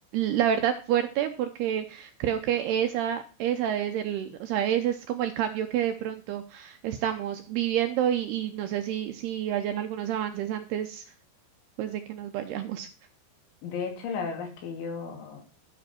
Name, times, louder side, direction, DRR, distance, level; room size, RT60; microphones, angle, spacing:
voice 1, 0.1-11.0 11.8-12.9, right 10 dB, 75° right, 7 dB, 2.5 m, -28 dB
voice 2, 13.6-15.5, left 5 dB, 75° left, 3 dB, 5.1 m, -34 dB
13.5 x 6.6 x 4.4 m, 0.36 s
omnidirectional pair, 5.5 m